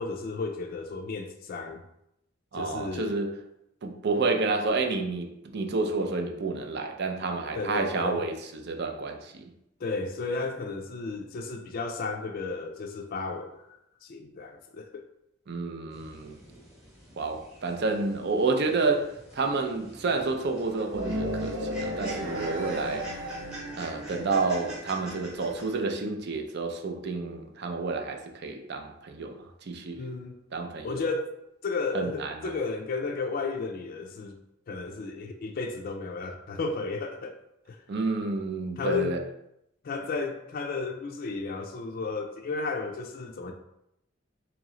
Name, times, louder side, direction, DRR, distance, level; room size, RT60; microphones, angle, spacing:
voice 1, 0.0-1.8 2.5-3.2 7.5-8.2 9.8-13.8 14.0-15.0 29.9-30.4 30.8-31.3 31.6-34.4 34.7-37.4 37.7-37.8 38.8-39.2 39.8-43.5, left 4 dB, 50° left, 0.4 m, -33 dB
voice 2, 2.5-3.3 3.8-8.4 8.6-9.5 15.5-16.3 17.2-23.1 23.8-29.4 29.7-30.0 30.5-31.0 31.9-32.5 37.9-39.2, right 3 dB, 55° right, 0.5 m, -29 dB
sound 1, 15.9-25.8, right 1 dB, 5° right, 1.0 m, -46 dB
sound 2, 20.9-24.8, equal, 80° right, 0.9 m, -34 dB
3.0 x 3.0 x 3.7 m
head